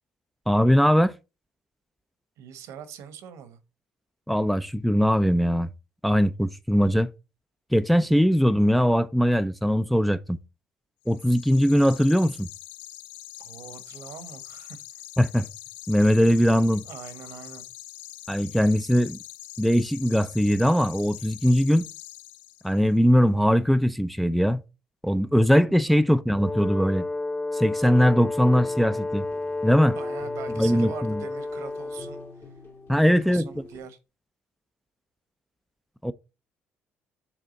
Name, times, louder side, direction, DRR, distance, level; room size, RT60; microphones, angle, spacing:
voice 1, 0.5-1.1 4.3-5.7 6.0-7.1 7.7-10.4 11.1-12.5 15.2-15.5 15.9-16.8 18.3-19.2 19.6-21.9 22.6-24.6 25.0-27.1 27.5-29.3 29.6-30.0 30.6-31.2 32.9-33.5 36.0-36.1, equal, ahead, 0.4 m, -21 dB
voice 2, 2.4-3.6 13.4-14.8 16.8-17.7 25.9-26.1 29.9-32.2 33.0-34.0, right 8 dB, 75° right, 1.1 m, -42 dB
sound 1, 11.0-22.9, left 15 dB, 90° left, 0.4 m, -44 dB
Brass instrument, 26.3-32.3, left 2 dB, 25° left, 1.2 m, -31 dB
sound 2, 27.9-33.8, left 2 dB, 40° left, 1.5 m, -46 dB
6.2 x 3.5 x 5.2 m
supercardioid pair, 70°, 5 cm